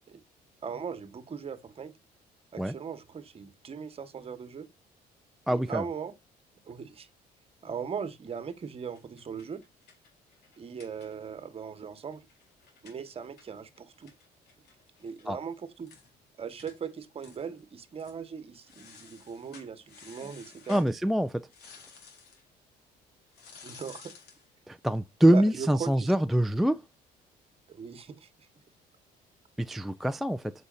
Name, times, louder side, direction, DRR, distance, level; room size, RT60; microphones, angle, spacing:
voice 1, 0.6-1.9 2.5-4.7 5.5-6.1 6.7-7.1 7.6-9.6 10.6-12.2 12.8-14.1 15.0-15.9 16.4-20.8 23.6-24.1 25.3-26.1 27.7-28.3, right 6 dB, 35° right, 1.4 m, -39 dB
voice 2, 5.5-5.8 15.3-15.4 20.7-21.5 24.7-26.8 29.6-30.5, right 1 dB, ahead, 0.4 m, -25 dB
sound 1, 8.8-11.5 11.8-11.9 12.1-15.3 15.6-15.7 15.9-16.1 16.6-16.8 17.2-17.6 17.9-18.2 18.6-20.9 21.5-22.4 23.3-24.5, left 5 dB, 75° left, 3.9 m, -53 dB
8.2 x 6.4 x 2.6 m
cardioid pair, 110°, 17 cm